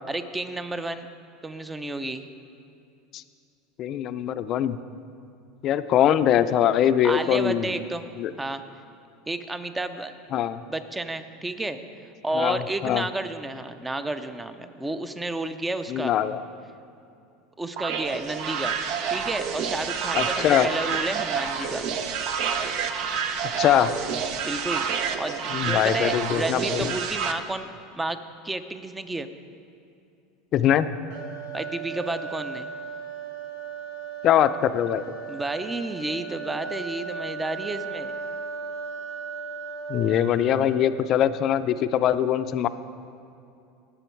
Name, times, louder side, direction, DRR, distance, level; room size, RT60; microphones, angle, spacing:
voice 1, 0.1-1.1 1.4-2.2 7.0-8.0 8.4-8.6 9.3-10.2 10.7-11.8 12.2-16.1 17.6-18.8 19.1-21.9 24.4-24.9 25.2-27.7 27.9-28.2 28.4-29.3 31.5-32.7 35.3-38.2, right 2 dB, 10° right, 10 dB, 0.6 m, -31 dB
voice 2, 3.8-4.8 5.6-7.7 8.2-8.3 10.3-10.6 12.3-13.0 15.9-16.4 20.2-20.7 23.6-23.9 25.5-26.9 30.5-30.9 34.2-35.1 39.9-42.7, left 10 dB, 45° left, 12 dB, 0.5 m, -22 dB
sound 1, 17.8-27.3, right 6 dB, 60° right, 0.8 m, -28 dB
sound 2, 31.1-41.0, right 5 dB, 75° right, 1.8 m, -36 dB
19.0 x 7.0 x 4.5 m, 2.6 s
supercardioid pair, 115°, 0 cm